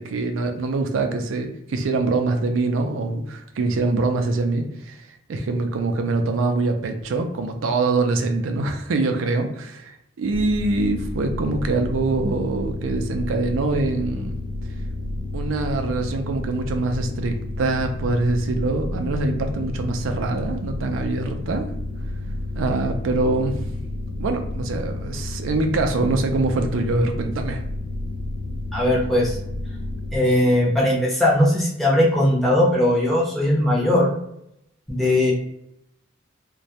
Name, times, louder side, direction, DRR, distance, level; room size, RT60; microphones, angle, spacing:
voice 1, 0.0-5.0 5.3-14.3 15.3-21.7 22.6-23.7 24.2-27.6, right 3 dB, 80° right, 5 dB, 0.4 m, -24 dB
sound 1, 10.3-30.2, left 2 dB, 70° left, 0.5 m, -30 dB
voice 2, 28.7-29.4 30.1-34.1 34.9-35.3, left 1 dB, ahead, -5 dB, 0.6 m, -19 dB
2.2 x 2.0 x 2.7 m, 0.79 s
head